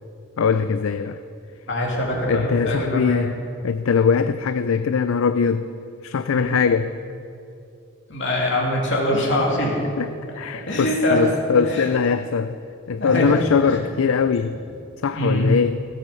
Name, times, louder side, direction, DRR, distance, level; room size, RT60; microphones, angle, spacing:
voice 1, 0.4-1.2 2.3-3.3 3.6-5.7 6.0-6.9 10.0-10.1 10.3-12.6 12.9-14.6 15.0-15.8, left 6 dB, 75° left, 11 dB, 0.4 m, -21 dB
voice 2, 1.7-3.3 6.3-6.5 8.1-9.8 10.5-11.2 11.5-11.9 13.0-13.3 13.6-13.8 15.1-15.5, left 1 dB, 60° left, -2 dB, 2.9 m, -23 dB
16.0 x 8.4 x 7.0 m, 2.7 s
head